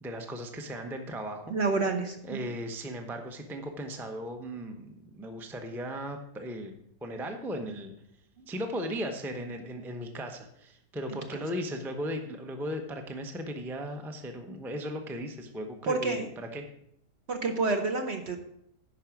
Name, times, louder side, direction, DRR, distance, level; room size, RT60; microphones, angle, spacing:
voice 1, 0.0-1.5 2.2-6.8 7.0-7.9 8.5-16.6, equal, ahead, 4 dB, 0.6 m, -37 dB
voice 2, 1.5-2.5 15.8-16.3 17.3-18.4, right 3 dB, 50° right, 5 dB, 0.9 m, -29 dB
11.0 x 4.9 x 6.0 m, 0.74 s
omnidirectional pair, 1.7 m